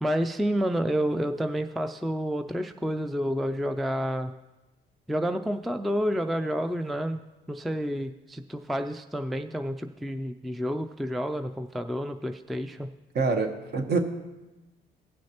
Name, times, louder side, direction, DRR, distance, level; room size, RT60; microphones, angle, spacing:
voice 1, 0.0-4.3 5.1-7.2 7.5-12.9, equal, ahead, 7 dB, 0.3 m, -29 dB
voice 2, 13.1-14.0, right 4 dB, 55° right, 5 dB, 1.2 m, -25 dB
18.5 x 6.2 x 2.9 m, 1.1 s
cardioid pair, 90°, 20 cm